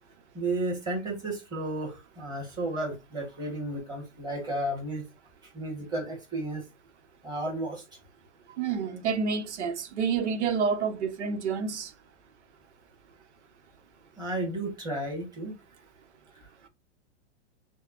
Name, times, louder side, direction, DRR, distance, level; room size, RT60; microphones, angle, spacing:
voice 1, 0.3-5.0 5.5-6.6 7.2-7.8 14.2-15.5, right 2 dB, 10° right, 1.5 m, -33 dB
voice 2, 8.6-11.9, right 6 dB, 70° right, 1.2 m, -28 dB
6.4 x 2.4 x 2.5 m
hypercardioid pair, 160°, 36 cm